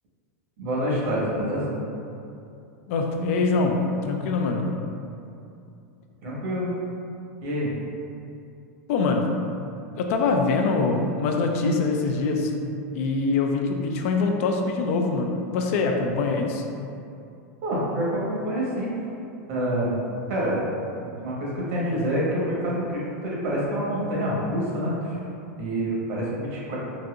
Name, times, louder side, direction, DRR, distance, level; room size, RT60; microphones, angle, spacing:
voice 1, 0.6-1.8 6.2-6.7 7.4-7.7 17.6-18.9 19.5-20.0 20.3-20.6 21.2-25.2 25.5-26.8, equal, 65° right, -6 dB, 1.2 m, -27 dB
voice 2, 2.9-4.7 8.9-9.5 10.0-12.5 12.9-16.6, left 3 dB, 60° left, 3 dB, 0.4 m, -24 dB
4.0 x 2.6 x 2.4 m, 2.6 s
hypercardioid pair, 120°, 8 cm